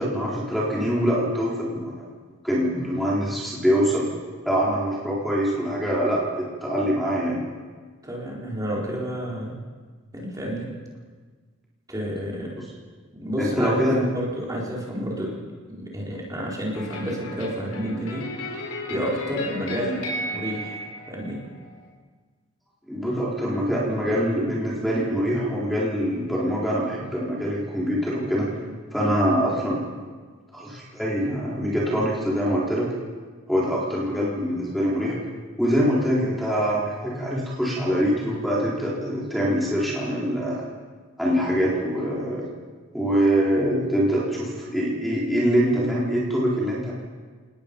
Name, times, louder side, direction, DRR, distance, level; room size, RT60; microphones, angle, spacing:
voice 1, 0.0-2.1 2.4-4.1 4.4-7.4 12.6-12.7 13.4-14.1 22.9-28.5 28.9-29.8 30.5-32.9 33.5-35.1 35.6-40.6 41.2-42.5 42.9-46.9, equal, ahead, -6 dB, 4.0 m, -24 dB
voice 2, 8.0-9.6 10.1-10.7 11.9-12.6 13.1-15.3 15.7-21.4, equal, 15° right, -4 dB, 4.3 m, -30 dB
sound 1, 16.7-21.8, left 1 dB, 90° left, 4.4 m, -34 dB
27.5 x 19.5 x 5.3 m, 1.5 s
head